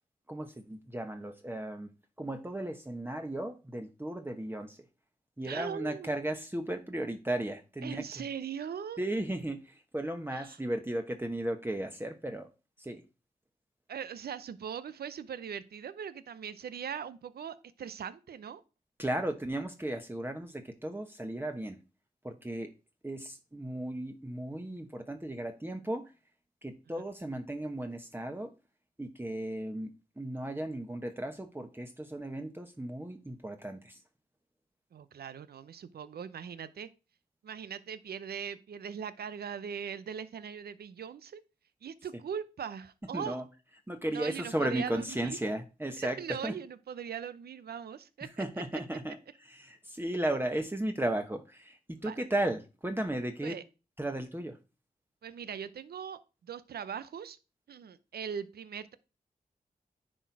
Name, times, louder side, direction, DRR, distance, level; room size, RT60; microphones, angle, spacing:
voice 1, 0.3-1.9 2.2-4.8 5.4-8.0 9.0-12.5 12.8-13.0 19.0-21.8 22.2-22.7 23.0-26.1 26.6-28.5 29.0-34.0 43.1-43.4 43.9-46.5 48.2-53.6 54.0-54.6, right 1 dB, 15° right, 5 dB, 1.1 m, -35 dB
voice 2, 5.4-6.1 7.8-9.0 10.3-10.6 13.9-18.6 34.9-36.9 37.4-41.4 41.8-43.4 44.1-45.4 46.0-48.4 52.0-52.2 53.4-53.6 55.2-57.4 57.7-59.0, right 7 dB, 80° right, 14 dB, 0.7 m, -40 dB
10.0 x 4.3 x 4.7 m, 0.31 s
cardioid pair, 45°, 16 cm